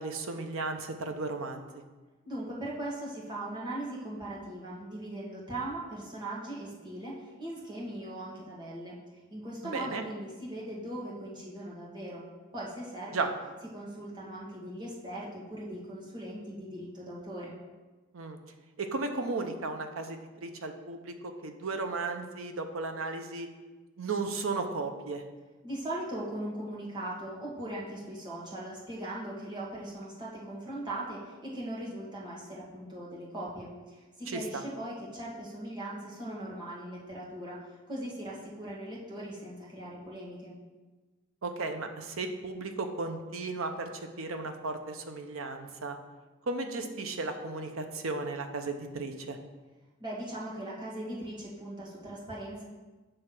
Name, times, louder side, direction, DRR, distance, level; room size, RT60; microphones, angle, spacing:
voice 1, 0.0-1.7 9.6-10.0 13.1-13.3 18.1-18.4 18.8-23.5 24.0-25.2 34.3-34.6 41.4-43.9 44.2-46.0 46.5-49.4, right 3 dB, 90° right, 6 dB, 0.7 m, -35 dB
voice 2, 2.2-9.0 9.3-12.2 12.5-13.3 13.7-17.5 25.6-37.6 37.9-40.5 50.0-52.7, right 1 dB, 20° right, -5 dB, 1.5 m, -39 dB
7.7 x 3.3 x 6.0 m, 1.3 s
head